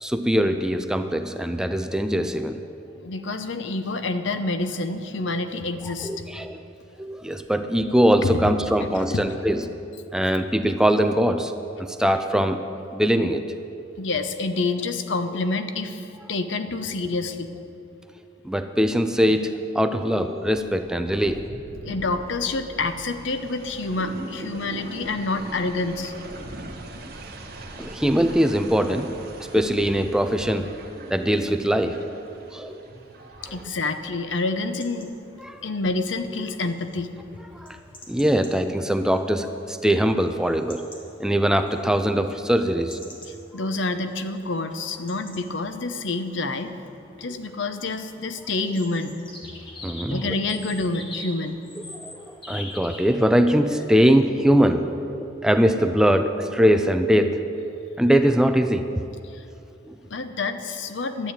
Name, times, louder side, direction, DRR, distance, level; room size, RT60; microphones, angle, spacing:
voice 1, 0.0-2.6 6.0-6.6 7.0-9.6 10.1-11.5 11.8-12.6 12.9-13.5 18.4-21.5 27.8-30.7 31.1-32.0 32.5-32.8 33.5-33.6 35.4-35.6 37.5-37.8 38.1-40.9 41.2-43.2 48.6-48.7 49.8-50.4 51.9-57.4 58.0-59.0 59.9-60.0, equal, 5° right, 8 dB, 0.4 m, -22 dB
voice 2, 3.0-6.3 8.2-8.3 9.1-9.2 14.0-17.5 21.8-26.1 33.4-35.1 35.6-37.1 43.5-46.7 47.2-49.2 50.1-51.6 59.3-59.4 60.1-61.3, left 3 dB, 75° left, 9 dB, 0.8 m, -28 dB
sound 1, 21.1-33.6, right 1 dB, 55° right, 1.6 m, -41 dB
sound 2, 34.5-53.6, left 2 dB, 25° left, 1.8 m, -46 dB
12.0 x 8.5 x 9.0 m, 2.8 s
head